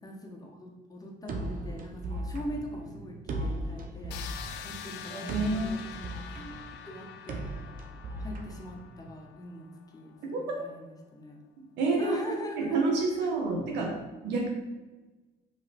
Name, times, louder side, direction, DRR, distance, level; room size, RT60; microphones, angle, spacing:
voice 1, 0.0-4.2 4.6-7.5 8.2-9.7 9.9-11.4 12.0-12.8 13.2-13.3, equal, 20° left, 0 dB, 1.4 m, -41 dB
sound 1, 1.3-9.2, right 1 dB, 55° right, 1.0 m, -38 dB
sound 2, 4.1-9.9, left 8 dB, 85° left, 0.6 m, -45 dB
voice 2, 5.1-5.7 10.3-10.4 11.8-12.2 12.6-14.0 14.2-14.5, right 3 dB, 90° right, 0 dB, 1.8 m, -28 dB
5.8 x 5.3 x 4.3 m, 1.2 s
cardioid pair, 110°, 17 cm